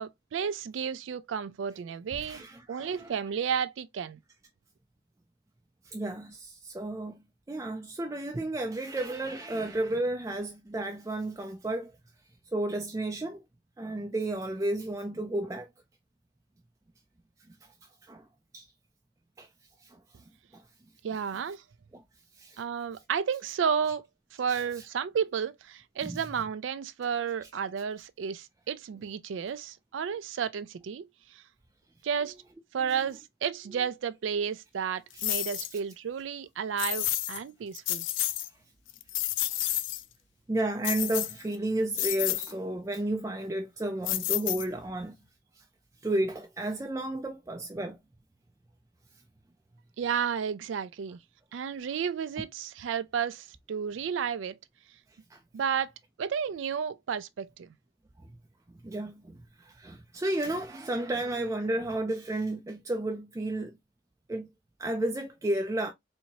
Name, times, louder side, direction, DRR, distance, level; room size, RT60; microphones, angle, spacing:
voice 1, 0.0-2.4 2.7-4.2 21.0-21.6 22.6-24.1 24.4-31.4 32.0-32.3 32.7-38.1 50.0-51.2 51.5-54.6 55.5-55.9 56.2-57.7, right 7 dB, 85° right, 0.4 m, -32 dB
voice 2, 2.1-3.1 5.8-11.9 12.5-13.4 13.8-15.7 18.0-18.2 18.5-18.7 19.4-19.5 19.8-20.0 20.5-20.6 21.9-22.0 22.4-22.6 24.5-24.6 26.0-26.2 32.8-33.1 35.1-35.2 35.7-35.8 40.5-45.2 45.6-45.7 46.0-48.0 55.3-55.4 58.7-63.8 64.3-64.5 64.8-65.9, right 1 dB, 15° right, 0.4 m, -32 dB
sound 1, 35.2-35.7 36.8-37.4 37.7-38.5 38.9-40.0 40.8-41.5 41.9-42.5 44.0-44.9, left 15 dB, 85° left, 0.4 m, -30 dB
4.4 x 2.7 x 2.7 m
head